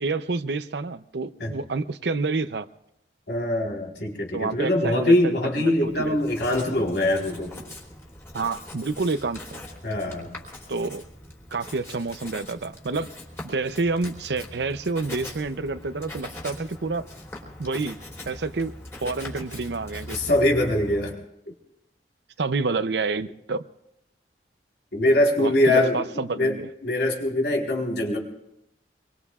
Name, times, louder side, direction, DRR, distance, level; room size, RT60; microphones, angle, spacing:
voice 1, 0.0-2.7 4.3-6.2 8.3-9.6 10.7-11.0 11.5-13.1 13.4-17.1 17.6-18.0 18.3-18.7 19.0-20.2 22.4-23.6 25.4-26.7, right 3 dB, 75° right, 12 dB, 0.7 m, -28 dB
voice 2, 3.3-7.6 9.8-10.3 20.1-21.1 24.9-26.5 26.8-28.2, left 1 dB, 75° left, 0 dB, 4.0 m, -23 dB
Writing, 5.8-21.2, left 1 dB, 15° left, 3.3 m, -41 dB
25.5 x 23.0 x 2.4 m, 0.82 s
head